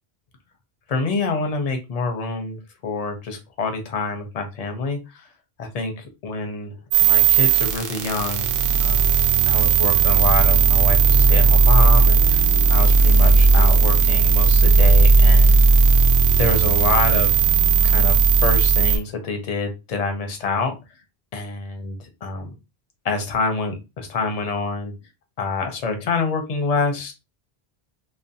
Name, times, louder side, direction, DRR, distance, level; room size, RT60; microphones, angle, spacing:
voice 1, 0.9-5.3 5.6-6.7 7.0-8.5 8.8-9.2 9.5-15.6 16.4-17.3 17.8-20.8 21.3-22.5 23.0-24.9 25.4-27.1, left 3 dB, 50° left, 5 dB, 0.5 m, -26 dB
sound 1, 6.9-19.0, right 4 dB, 65° right, 0.7 m, -15 dB
2.5 x 2.0 x 2.6 m, 0.26 s
omnidirectional pair, 1.1 m